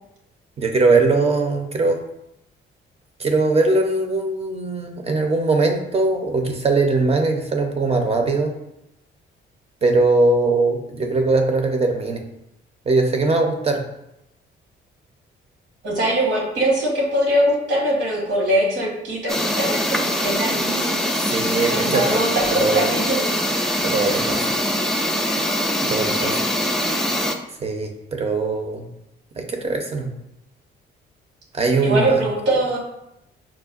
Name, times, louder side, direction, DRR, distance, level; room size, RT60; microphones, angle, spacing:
voice 1, 0.6-2.0 3.2-8.5 9.8-12.2 12.9-13.8 21.3-22.2 22.5-22.8 23.8-24.5 25.8-26.4 27.6-28.9 29.4-30.1 31.5-32.2, right 3 dB, 30° right, 4 dB, 0.7 m, -20 dB
voice 2, 15.8-21.1 21.7-23.4 26.1-26.5 31.8-32.8, right 1 dB, 70° right, -2 dB, 1.3 m, -22 dB
sound 1, 19.3-27.3, equal, 5° left, 0.4 m, -23 dB
5.8 x 2.2 x 2.4 m, 0.84 s
cardioid pair, 90°, 20 cm